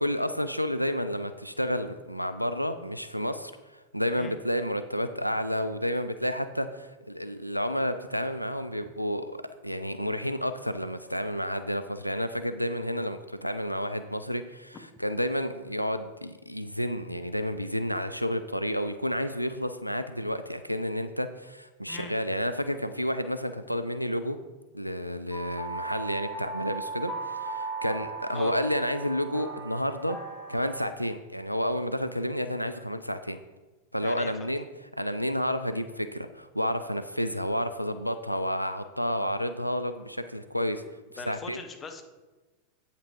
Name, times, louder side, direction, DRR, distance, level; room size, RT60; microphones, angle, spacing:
voice 1, 0.0-24.4 24.7-30.2 30.5-33.4 33.9-34.7 35.0-40.8 41.1-41.6, equal, 90° left, 9 dB, 0.3 m, -30 dB
sound 1, 25.3-30.8, right 3 dB, 5° right, 2.5 m, -37 dB
voice 2, 34.0-34.5 41.2-42.0, left 4 dB, 20° left, 5 dB, 0.9 m, -41 dB
8.6 x 5.8 x 4.5 m, 1.2 s
figure-of-eight pair, 90°, 0 cm